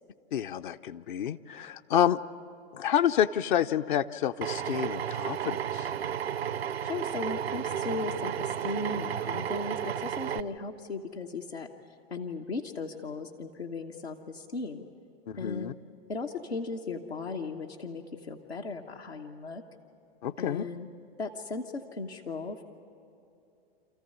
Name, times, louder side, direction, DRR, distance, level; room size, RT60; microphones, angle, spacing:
voice 1, 0.3-2.2 2.7-5.9 15.3-15.7 20.2-20.6, left 10 dB, 55° left, 9 dB, 0.6 m, -28 dB
Drill, 4.4-10.4, right 9 dB, 80° right, 0.6 m, -33 dB
voice 2, 6.8-11.7 12.1-14.8 15.4-15.7 16.1-19.6 20.4-20.9 21.2-22.6, left 3 dB, 85° left, 1 dB, 1.2 m, -37 dB
28.0 x 14.5 x 9.7 m, 2.7 s
figure-of-eight pair, 95°, 31 cm